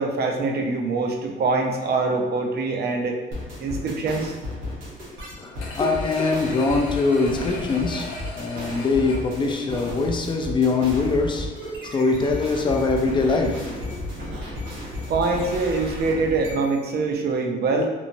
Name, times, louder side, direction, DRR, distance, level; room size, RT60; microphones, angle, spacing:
voice 1, 0.0-3.2 3.6-4.3 15.1-17.9, right 3 dB, 55° right, 0.5 m, -24 dB
sound 1, 3.3-16.8, left 1 dB, 85° right, 1.0 m, -33 dB
voice 2, 5.4-11.6 11.8-14.0, left 3 dB, 25° left, 0.4 m, -23 dB
sound 2, 5.6-10.4 10.8-10.9, left 2 dB, 80° left, 0.6 m, -38 dB
3.0 x 2.1 x 2.6 m
cardioid pair, 90°, 20 cm